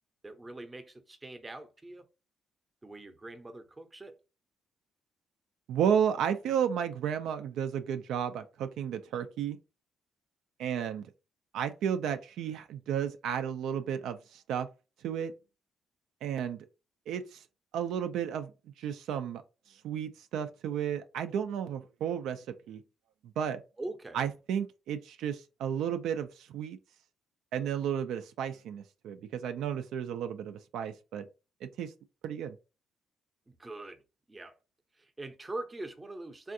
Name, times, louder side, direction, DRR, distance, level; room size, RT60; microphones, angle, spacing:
voice 1, 0.2-2.0 2.8-4.2 23.8-24.2 33.5-34.0 34.3-34.5 35.0-36.5, right 2 dB, 20° right, 0.6 m, -43 dB
voice 2, 5.7-9.6 10.6-11.1 11.5-14.7 15.0-15.3 16.2-16.7 17.1-17.4 17.7-18.5 18.8-19.4 19.7-22.8 23.2-23.6 24.1-26.8 27.5-31.2 31.6-31.9 32.2-32.6, right 8 dB, 85° right, 0.3 m, -33 dB
3.5 x 2.4 x 2.6 m
cardioid pair, 90°, 0 cm